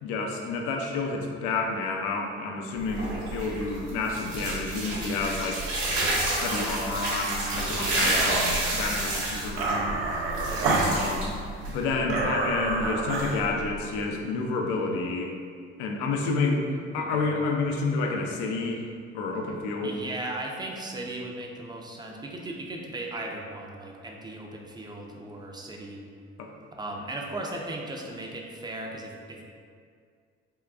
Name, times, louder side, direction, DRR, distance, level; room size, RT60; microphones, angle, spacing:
voice 1, 0.0-10.0 10.9-11.4 11.7-15.3 15.8-18.9 19.1-20.0 26.4-26.5, left 3 dB, 75° left, 1 dB, 0.5 m, -30 dB
sound 1, 2.8-11.9, right 1 dB, 70° right, 1.0 m, -30 dB
voice 2, 8.0-8.4 10.5-10.9 17.0-17.3 19.8-26.0 26.7-29.5, right 2 dB, 15° right, 0 dB, 0.4 m, -37 dB
sound 2, 8.2-14.0, right 2 dB, 85° right, 0.5 m, -29 dB
3.7 x 2.2 x 2.3 m, 2.1 s
hypercardioid pair, 60°, 30 cm